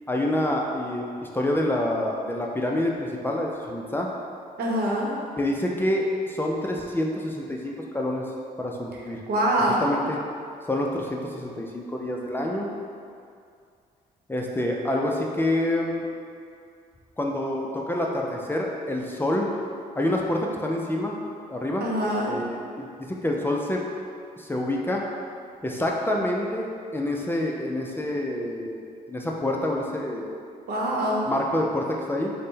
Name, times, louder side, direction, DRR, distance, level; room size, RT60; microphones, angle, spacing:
voice 1, 0.1-4.1 5.4-8.2 8.6-9.2 9.8-10.2 10.7-12.7 14.3-16.1 17.2-19.5 19.9-21.2 21.5-21.8 22.3-23.8 24.4-25.0 25.6-30.2 31.2-32.3, left 1 dB, 15° left, -1 dB, 0.4 m, -27 dB
voice 2, 4.6-5.1 9.3-9.8 21.8-22.3 30.7-31.3, right 1 dB, 70° right, -4 dB, 0.8 m, -24 dB
3.8 x 2.1 x 3.7 m, 2.3 s
cardioid pair, 75°, 16 cm